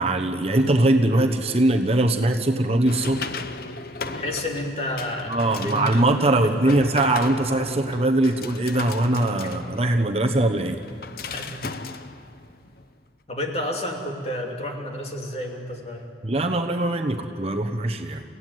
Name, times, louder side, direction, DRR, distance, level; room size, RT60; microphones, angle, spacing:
voice 1, 0.0-3.3 5.3-10.8 16.2-18.2, right 1 dB, 35° right, 5 dB, 1.1 m, -21 dB
sound 1, 2.9-12.9, left 4 dB, 55° left, 0.8 m, -37 dB
voice 2, 4.0-6.8 11.3-11.7 13.3-16.1, left 1 dB, 35° left, 1 dB, 2.7 m, -31 dB
29.0 x 16.5 x 9.4 m, 2.5 s
head